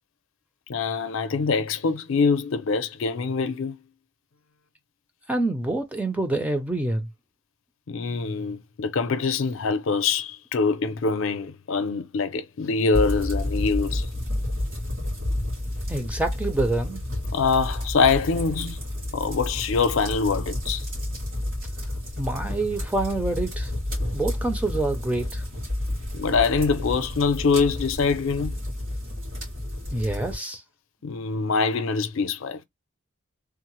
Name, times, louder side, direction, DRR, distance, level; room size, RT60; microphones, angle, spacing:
voice 1, 0.7-3.8 7.9-14.1 17.3-18.8 19.1-20.8 26.1-28.6 31.0-32.6, left 4 dB, 70° left, 0.5 m, -24 dB
voice 2, 5.3-7.1 15.9-17.0 22.2-23.7 24.1-25.4 29.9-30.6, right 2 dB, 5° right, 0.4 m, -26 dB
sound 1, 12.9-30.3, left 1 dB, 65° right, 2.3 m, -30 dB
3.5 x 2.0 x 2.9 m
head